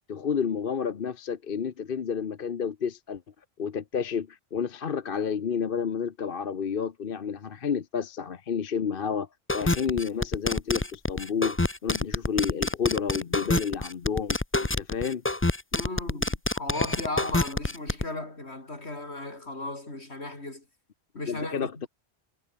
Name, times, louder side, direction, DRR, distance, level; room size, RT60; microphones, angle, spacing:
voice 1, 0.1-3.2 3.6-9.3 9.5-14.4 14.8-15.2 21.3-21.9, left 6 dB, 55° left, 1.1 m, -30 dB
sound 1, 9.5-18.0, left 2 dB, 15° left, 0.8 m, -26 dB
voice 2, 15.7-20.6 21.1-21.9, left 2 dB, 80° left, 5.2 m, -36 dB
omnidirectional pair, 1.1 m